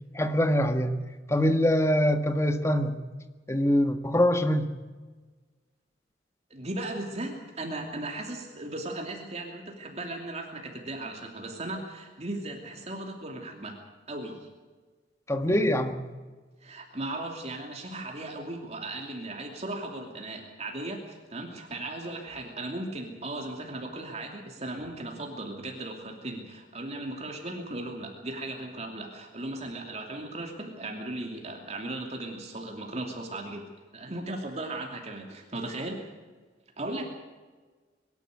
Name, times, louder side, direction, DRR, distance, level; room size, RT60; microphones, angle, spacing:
voice 1, 0.1-1.0 1.3-3.0 3.5-4.7 15.3-16.0, equal, 15° left, 8 dB, 1.6 m, -24 dB
voice 2, 6.5-13.8 14.1-14.5 16.6-36.1 36.8-37.1, right 2 dB, 40° right, 2 dB, 2.8 m, -37 dB
23.5 x 12.0 x 9.4 m, 1.3 s
head